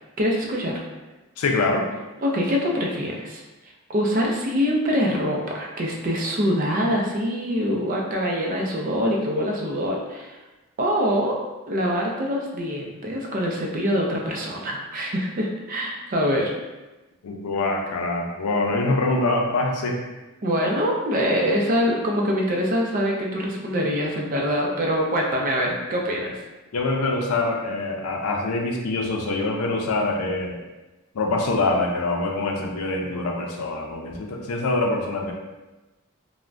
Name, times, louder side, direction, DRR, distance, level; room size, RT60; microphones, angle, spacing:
voice 1, 0.2-0.8 2.2-3.4 3.9-10.4 10.8-11.4 11.7-16.5 20.4-26.3, equal, 40° right, -1 dB, 0.4 m, -24 dB
voice 2, 1.4-1.9 17.2-20.0 26.7-30.6 31.1-35.3, left 2 dB, 85° left, 1 dB, 0.5 m, -24 dB
3.3 x 2.1 x 2.4 m, 1.1 s
head